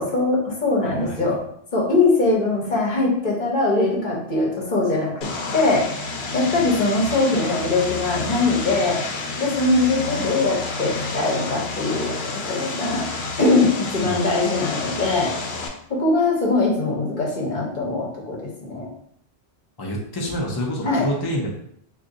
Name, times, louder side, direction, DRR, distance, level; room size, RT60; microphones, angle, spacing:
voice 1, 0.0-1.4 1.7-6.1 6.3-9.0 9.4-13.1 13.4-15.3 15.9-18.9 20.8-21.1, left 3 dB, 50° left, -2 dB, 1.0 m, -22 dB
voice 2, 0.8-1.2 14.0-14.3 19.8-21.5, equal, 35° left, -2 dB, 0.4 m, -27 dB
Vehicle, 5.2-15.7, left 3 dB, 75° left, 0.9 m, -30 dB
2.6 x 2.6 x 3.7 m, 0.69 s
omnidirectional pair, 1.1 m